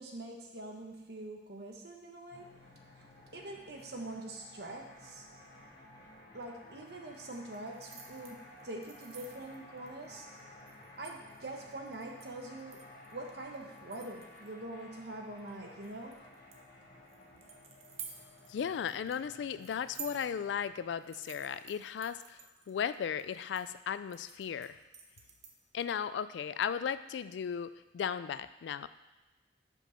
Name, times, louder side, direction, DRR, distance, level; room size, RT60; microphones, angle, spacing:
voice 1, 0.0-2.5 3.0-3.1 3.3-5.3 6.3-10.3 11.0-12.8 13.1-16.3, right 2 dB, 60° right, 1 dB, 1.0 m, -44 dB
sound 1, 2.3-20.9, left 1 dB, 60° left, 1.4 m, -55 dB
sound 2, 7.2-25.9, right 7 dB, 35° right, 0.7 m, -54 dB
voice 2, 18.5-24.8 25.7-28.9, left 7 dB, 80° left, 14 dB, 0.3 m, -36 dB
5.4 x 4.9 x 5.7 m, 1.1 s
head